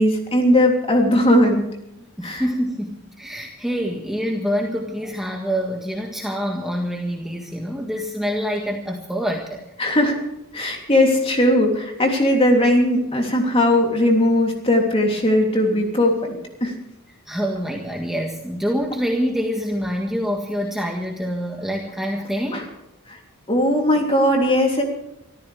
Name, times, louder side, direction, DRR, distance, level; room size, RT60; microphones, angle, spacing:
voice 1, 0.0-1.6 2.2-2.4 9.8-10.2 10.5-16.3 16.6-16.7 22.5-22.6 23.5-24.8, left 1 dB, 25° left, 1 dB, 3.2 m, -18 dB
voice 2, 2.2-9.6 17.3-22.6, equal, ahead, 0 dB, 1.6 m, -26 dB
25.5 x 14.0 x 3.5 m, 0.87 s
head